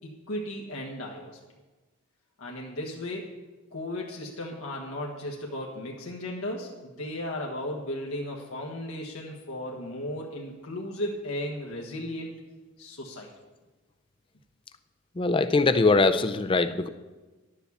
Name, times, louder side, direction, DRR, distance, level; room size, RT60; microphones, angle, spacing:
voice 1, 0.0-1.4 2.4-3.3 3.7-12.3 12.8-13.3, left 1 dB, 90° left, -2 dB, 1.5 m, -35 dB
voice 2, 15.2-16.9, left 3 dB, 25° left, 10 dB, 0.4 m, -22 dB
11.0 x 7.2 x 7.1 m, 1.2 s
head